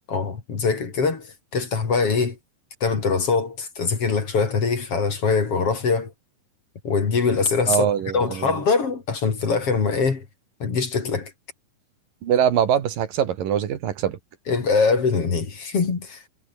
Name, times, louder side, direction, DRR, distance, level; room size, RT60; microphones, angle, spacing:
voice 1, 0.1-1.3 1.5-2.4 2.8-6.1 6.8-7.9 8.1-10.3 10.6-11.3 14.5-16.3, left 4 dB, 40° left, 3.8 m, -23 dB
voice 2, 7.7-8.5 12.2-14.2, right 9 dB, 70° right, 3.6 m, -22 dB
omnidirectional pair, 4.1 m